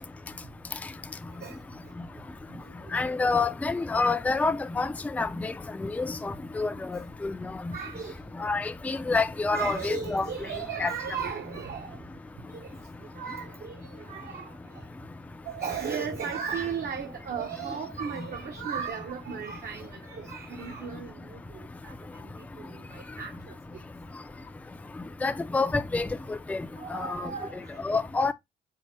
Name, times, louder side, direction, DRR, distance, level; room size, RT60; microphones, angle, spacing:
voice 1, 2.9-4.9 5.1-5.5 5.8-7.5 8.4-10.3 10.8-10.9 25.2-26.6 26.9-27.3 27.8-28.3, left 3 dB, 5° left, 0.4 m, -28 dB
voice 2, 7.7-8.2 9.5-12.0 12.5-12.7 13.1-14.5 15.5-21.9 22.6-23.5 26.8-27.8, right 6 dB, 50° right, 0.8 m, -36 dB
4.5 x 2.1 x 4.3 m
cardioid pair, 90°, 20 cm